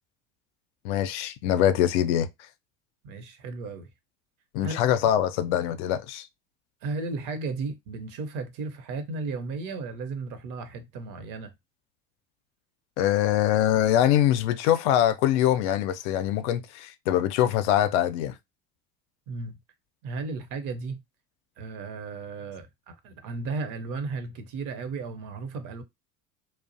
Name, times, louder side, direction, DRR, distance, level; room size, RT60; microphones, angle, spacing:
voice 1, 0.8-2.3 4.5-6.3 13.0-18.3, left 11 dB, 60° left, 0.5 m, -23 dB
voice 2, 3.0-3.9 4.6-4.8 6.8-11.5 19.3-19.6 20.0-21.0 21.6-25.8, right 3 dB, 50° right, 0.7 m, -34 dB
2.4 x 2.0 x 2.6 m
hypercardioid pair, 65°, 40 cm